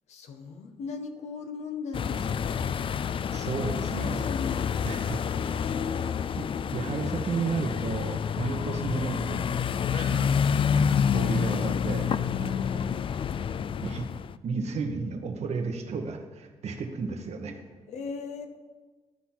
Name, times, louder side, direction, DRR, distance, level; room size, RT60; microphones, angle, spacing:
voice 1, 0.1-2.9 3.6-6.2 12.7-12.9 17.8-18.6, left 5 dB, 80° left, 6 dB, 1.0 m, -39 dB
sound 1, 1.9-14.4, left 7 dB, 50° left, 0.3 m, -28 dB
voice 2, 3.3-4.3 4.8-5.2 6.4-9.6 9.9-10.3 10.7-12.9 13.8-14.0 14.4-17.6, right 4 dB, 70° right, 5 dB, 1.2 m, -33 dB
12.0 x 4.2 x 6.0 m, 1.3 s
supercardioid pair, 55°, 11 cm